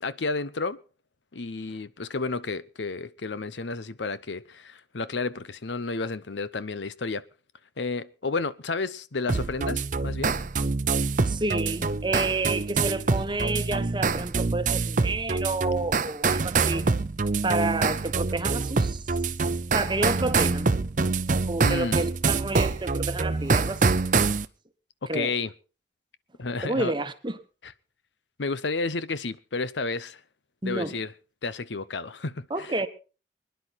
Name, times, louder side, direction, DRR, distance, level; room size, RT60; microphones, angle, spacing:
voice 1, 0.0-0.8 1.3-7.2 7.8-10.4 21.6-22.0 25.0-25.5 26.4-26.9 27.6-27.7 28.4-30.2 30.6-31.1 31.4-32.9, left 3 dB, 85° left, 0.8 m, -31 dB
sound 1, 9.3-24.4, right 4 dB, 45° right, 0.6 m, -25 dB
voice 2, 11.2-16.8 17.4-19.0 19.7-20.7 21.5-23.8 25.1-25.3 26.6-27.4 30.6-30.9 32.5-32.9, right 2 dB, 25° right, 1.1 m, -30 dB
25.0 x 10.5 x 4.1 m
head